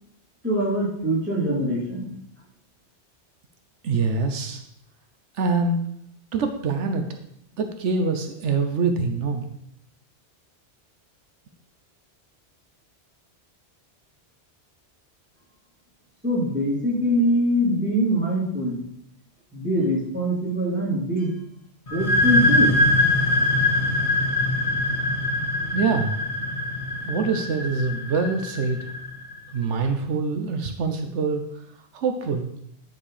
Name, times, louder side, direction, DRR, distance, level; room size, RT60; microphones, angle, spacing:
voice 1, 0.4-2.1 16.2-18.8 19.5-21.4 21.9-22.8, equal, 10° right, -7 dB, 3.1 m, -23 dB
voice 2, 3.8-4.6 5.3-5.9 6.3-7.2 7.6-9.5 25.7-26.2 27.0-28.8 29.5-31.4 31.9-32.5, right 4 dB, 85° right, 6 dB, 1.1 m, -24 dB
sound 1, 21.9-29.3, left 2 dB, 35° left, 1.0 m, -23 dB
10.0 x 4.5 x 4.9 m, 0.72 s
omnidirectional pair, 1.2 m